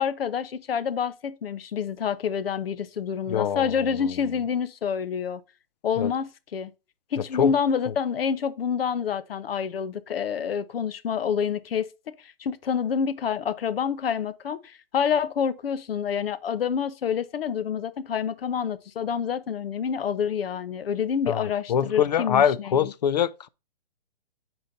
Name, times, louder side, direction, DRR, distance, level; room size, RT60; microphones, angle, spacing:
voice 1, 0.0-5.4 5.8-6.7 7.1-11.9 12.2-22.9, left 7 dB, 75° left, 0.8 m, -28 dB
voice 2, 3.3-4.1 6.0-6.1 7.3-7.5 7.9-8.0 21.3-23.5, left 8 dB, 45° left, 0.4 m, -24 dB
8.5 x 4.5 x 2.5 m
hypercardioid pair, 165°, 30 cm